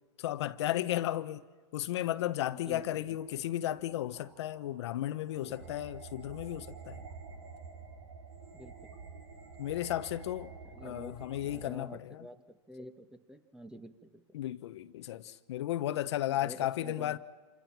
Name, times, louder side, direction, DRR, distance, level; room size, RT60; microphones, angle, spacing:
voice 1, 0.2-1.4 1.7-7.0 9.6-10.5 10.8-12.2 14.3-17.2, left 13 dB, 65° left, 1.1 m, -34 dB
voice 2, 2.5-3.2 5.4-5.9 8.5-8.9 10.6-14.2 16.3-17.2, equal, 5° right, 1.4 m, -49 dB
sound 1, 2.7-11.7, right 5 dB, 80° right, 3.8 m, -50 dB
27.5 x 27.0 x 6.1 m
hypercardioid pair, 135°, 15 cm